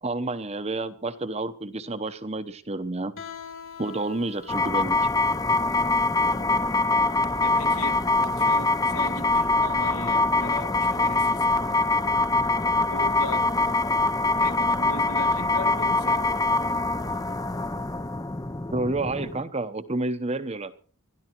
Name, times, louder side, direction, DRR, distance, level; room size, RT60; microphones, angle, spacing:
voice 1, 0.0-3.1 3.8-5.1 18.7-20.7, right 2 dB, 30° right, 12 dB, 0.9 m, -30 dB
Guitar, 3.2-8.9, left 8 dB, 65° left, 3.3 m, -46 dB
sound 1, 4.5-19.4, left 2 dB, 15° left, 0.6 m, -24 dB
voice 2, 7.4-11.6 12.9-13.5 14.4-16.3, left 3 dB, 90° left, 7 dB, 2.3 m, -38 dB
21.0 x 13.5 x 4.6 m, 0.42 s
head